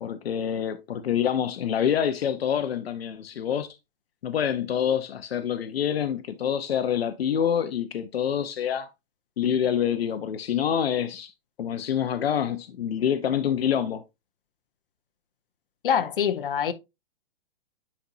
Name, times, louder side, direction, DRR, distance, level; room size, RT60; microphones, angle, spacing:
voice 1, 0.0-3.7 4.2-8.9 9.4-11.3 11.6-14.0, left 9 dB, 85° left, 0.8 m, -26 dB
voice 2, 15.8-16.7, left 8 dB, 65° left, 1.1 m, -24 dB
10.0 x 4.3 x 2.6 m
hypercardioid pair, 170°, 30 cm